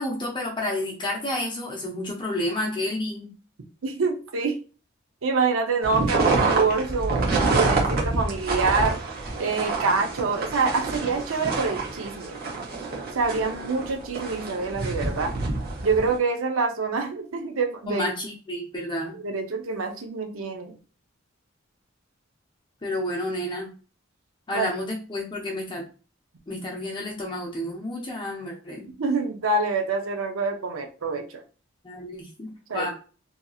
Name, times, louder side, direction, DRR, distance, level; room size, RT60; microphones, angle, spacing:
voice 1, 0.0-3.3 17.9-19.1 22.8-23.7 24.5-25.8 26.5-28.9 31.8-32.9, left 1 dB, 25° left, -1 dB, 0.6 m, -30 dB
voice 2, 3.8-4.5 5.2-9.0 9.4-12.4 13.1-15.3 15.8-18.1 19.2-20.8 24.5-24.7 29.0-31.4 32.7-32.9, right 4 dB, 85° right, 3 dB, 0.6 m, -26 dB
sound 1, 5.8-16.2, right 3 dB, 50° right, 0.8 m, -27 dB
2.8 x 2.7 x 2.3 m, 0.36 s
head